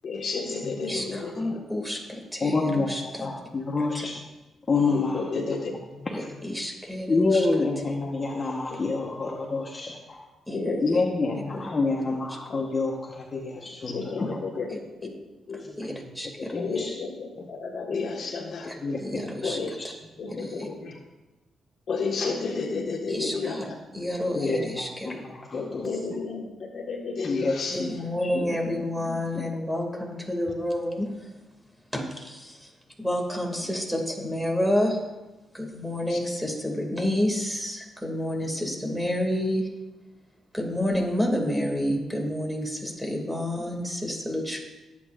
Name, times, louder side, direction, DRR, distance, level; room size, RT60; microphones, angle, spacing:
voice 1, 0.0-1.6 4.9-5.7 8.7-9.1 10.5-11.0 12.5-12.6 13.5-15.1 15.5-15.6 16.6-18.7 19.4-19.7 20.2-20.9 21.9-23.8 25.5-27.9 36.1-36.2, left 4 dB, 60° left, 0 dB, 1.6 m, -32 dB
voice 2, 0.8-3.3 3.9-4.1 6.1-7.5 7.9-8.0 10.5-11.0 11.5-11.7 14.7-14.8 15.5-16.5 18.7-18.8 19.0-19.6 20.4-20.7 23.1-23.7 23.9-25.2 27.7-31.3 31.9-32.7 33.0-35.0 35.5-39.7 40.5-44.6, left 1 dB, 5° right, 1 dB, 2.5 m, -29 dB
voice 3, 2.4-2.9 3.2-4.1 4.7-5.6 6.2-6.3 7.1-10.2 10.8-14.4 15.9-16.0 16.4-16.9 18.8-19.0 19.8-19.9 20.4-20.7 24.4-25.9 27.2-27.9 28.2-28.6 29.1-29.4, left 3 dB, 40° left, -1 dB, 1.2 m, -28 dB
17.0 x 8.6 x 2.6 m, 1.1 s
cardioid pair, 80°, 0 cm